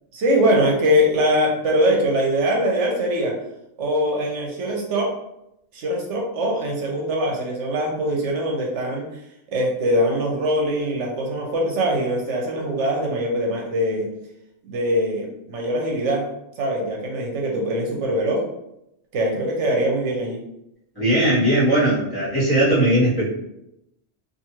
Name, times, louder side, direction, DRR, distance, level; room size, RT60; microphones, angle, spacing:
voice 1, 0.1-3.3 3.8-5.1 5.7-9.1 9.5-14.1 14.7-16.3 16.6-18.4 19.1-20.4, equal, 80° right, -1 dB, 1.0 m, -22 dB
voice 2, 20.9-23.3, right 1 dB, 20° left, -10 dB, 1.3 m, -19 dB
2.5 x 2.5 x 2.9 m, 0.82 s
omnidirectional pair, 1.2 m